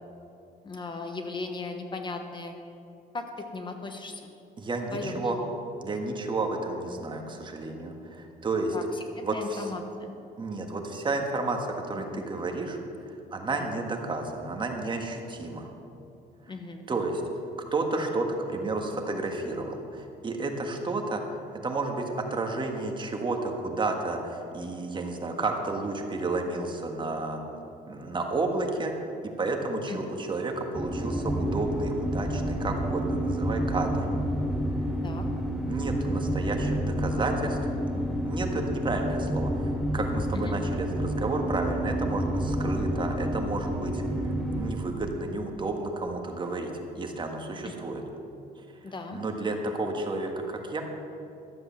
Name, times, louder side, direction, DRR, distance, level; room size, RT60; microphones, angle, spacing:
voice 1, 0.6-2.5 3.1-4.3 4.9-5.2 8.7-10.2 12.0-12.2 13.6-13.7 16.5-16.9 29.9-30.0 35.0-35.3 40.3-40.6 47.6-47.7 48.8-49.2, left 3 dB, 30° left, 5 dB, 1.0 m, -37 dB
voice 2, 4.6-5.4 5.8-8.7 9.2-9.7 10.4-12.8 13.1-15.7 16.9-17.2 17.7-21.2 21.6-27.4 27.9-28.9 29.2-34.1 35.7-37.6 37.9-44.0 44.6-48.0 49.1-50.8, right 3 dB, 30° right, 3 dB, 1.6 m, -31 dB
sound 1, 30.7-44.7, equal, ahead, 1.0 m, -29 dB
12.5 x 7.8 x 7.4 m, 2.7 s
cardioid pair, 110°, 17 cm